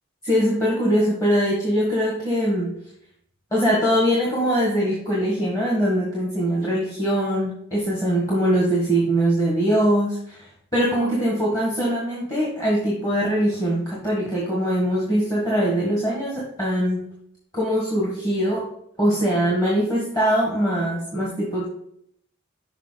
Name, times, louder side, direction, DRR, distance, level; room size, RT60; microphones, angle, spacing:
voice 1, 0.2-2.8 3.5-10.4 10.7-17.1 17.5-18.6 19.0-21.7, equal, 15° left, -5 dB, 1.6 m, -22 dB
6.6 x 5.4 x 4.0 m, 0.71 s
head